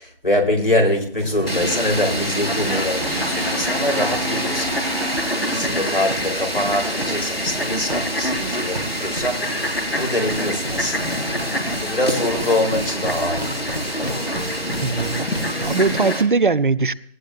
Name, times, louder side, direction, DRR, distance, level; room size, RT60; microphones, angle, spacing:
voice 1, 0.0-4.8 5.3-11.2 11.8-14.3, left 1 dB, 65° left, 4.1 m, -24 dB
sound 1, 1.2-16.0, right 1 dB, 85° right, 1.8 m, -34 dB
Fowl, 1.5-16.2, equal, 85° left, 3.9 m, -26 dB
Brass instrument, 2.0-5.8, right 1 dB, 40° right, 5.6 m, -31 dB
voice 2, 14.8-16.9, right 4 dB, 55° right, 0.6 m, -20 dB
18.5 x 16.5 x 2.6 m
figure-of-eight pair, 155°, 30 cm